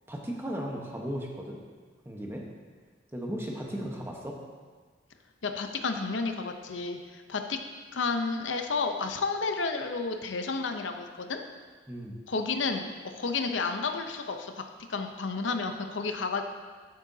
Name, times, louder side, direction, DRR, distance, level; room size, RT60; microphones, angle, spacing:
voice 1, 0.1-1.6 2.0-2.4 3.1-4.4 11.9-12.2, equal, 15° right, -1 dB, 1.1 m, -36 dB
voice 2, 5.4-7.6 7.9-11.4 12.3-12.9 13.2-14.5 14.9-16.4, left 4 dB, 90° left, 6 dB, 0.7 m, -31 dB
12.5 x 8.6 x 2.8 m, 1.5 s
head